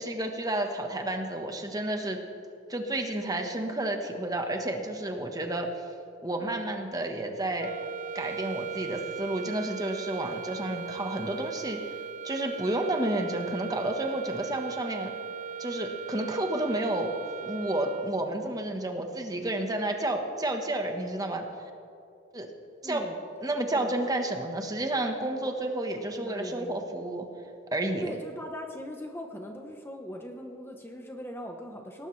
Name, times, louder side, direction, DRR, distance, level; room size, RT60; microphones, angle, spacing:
voice 1, 0.0-2.2 2.7-5.7 6.2-7.7 8.1-11.8 12.2-15.1 15.6-17.2 17.4-21.4 22.3-22.5 22.8-23.0 23.4-27.3 27.7-28.1, right 1 dB, 20° right, 4 dB, 1.2 m, -31 dB
sound 1, 7.6-18.5, right 7 dB, 40° right, 0.4 m, -39 dB
voice 2, 22.8-23.2 23.7-23.9 25.4-25.5 26.2-26.8 28.0-32.1, equal, 10° left, 3 dB, 0.9 m, -40 dB
18.5 x 18.0 x 3.3 m, 2.7 s
head